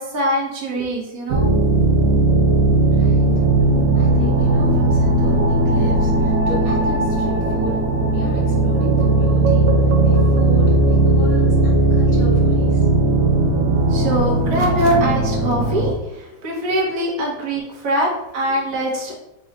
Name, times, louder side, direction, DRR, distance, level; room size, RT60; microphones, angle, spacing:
voice 1, 0.0-1.5 13.9-19.1, equal, 55° right, -2 dB, 1.3 m, -23 dB
sound 1, 1.3-15.9, right 2 dB, 80° right, 0.7 m, -17 dB
voice 2, 2.8-3.3 3.9-12.8 16.3-16.4 18.1-18.2, left 2 dB, 60° left, -3 dB, 1.0 m, -34 dB
3.9 x 2.3 x 4.1 m, 0.90 s
omnidirectional pair, 2.1 m